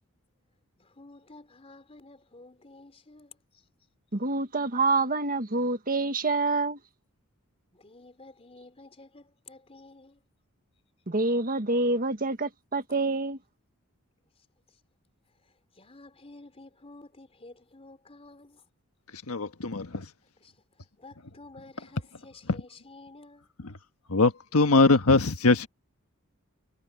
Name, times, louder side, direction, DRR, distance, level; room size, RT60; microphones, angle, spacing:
voice 1, 0.8-3.6 7.7-10.2 14.4-14.8 15.4-18.7 20.4-23.5, left 2 dB, 30° left, 3.5 m, -52 dB
voice 2, 4.1-6.8 11.1-13.4, right 3 dB, 40° right, 1.6 m, -27 dB
voice 3, 19.1-20.0 23.6-23.7 24.1-25.7, left 3 dB, 85° left, 1.5 m, -22 dB
head